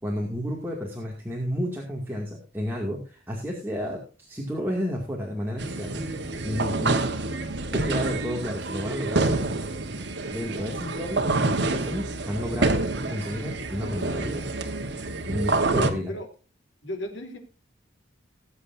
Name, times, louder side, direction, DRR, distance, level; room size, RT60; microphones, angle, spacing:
voice 1, 0.0-6.1 6.4-7.0 7.7-9.4 10.3-12.8 13.1-14.5 15.3-16.1, equal, 10° right, -2 dB, 2.3 m, -31 dB
sound 1, 5.6-15.9, right 2 dB, 65° right, 1.4 m, -27 dB
voice 2, 15.8-16.3 16.8-17.4, equal, 70° left, 3 dB, 3.3 m, -34 dB
19.5 x 8.4 x 2.7 m, 0.33 s
head